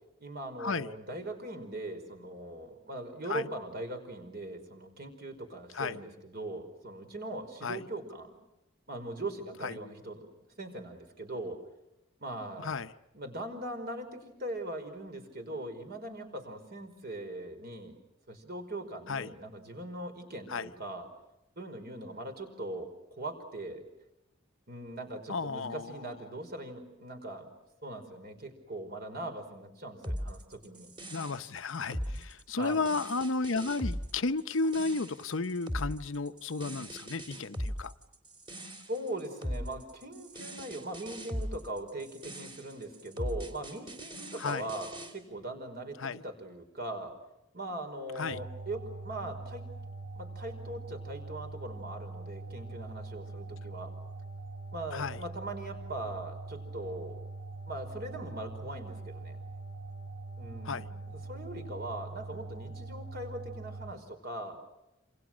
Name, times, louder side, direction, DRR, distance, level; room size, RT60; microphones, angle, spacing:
voice 1, 0.2-8.3 8.9-10.3 10.6-11.6 12.2-12.7 13.1-18.0 18.3-21.1 21.6-23.8 24.7-27.5 27.8-30.9 32.6-32.9 38.9-47.1 47.5-49.7 50.1-53.9 54.7-57.2 57.7-59.4 60.4-64.6, right 1 dB, 50° right, 6 dB, 5.1 m, -40 dB
voice 2, 25.3-26.0 31.1-37.9 44.4-44.7 46.0-46.2 48.2-48.4 54.9-55.2 60.6-60.9, left 3 dB, 70° left, 11 dB, 0.9 m, -33 dB
sound 1, 30.0-45.1, equal, 25° right, 3.4 m, -39 dB
sound 2, 48.3-63.9, right 3 dB, 75° right, 3.8 m, -43 dB
28.0 x 27.5 x 6.3 m, 0.90 s
head